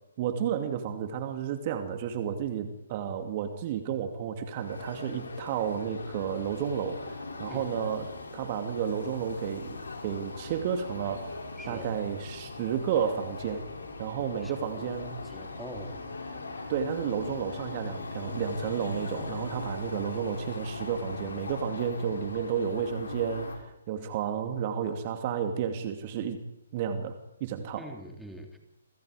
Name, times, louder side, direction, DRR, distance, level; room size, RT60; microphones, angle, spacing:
voice 1, 0.2-13.7 14.0-15.2 16.7-26.4 26.7-27.9, right 8 dB, 35° right, 7 dB, 2.4 m, -32 dB
sound 1, 4.6-23.6, left 3 dB, 70° left, 6.5 m, -40 dB
voice 2, 11.6-11.9 14.4-14.9 15.2-16.1 27.8-28.6, right 1 dB, ahead, 3 dB, 3.1 m, -44 dB
28.0 x 26.0 x 5.0 m, 0.86 s
figure-of-eight pair, 135°, 0 cm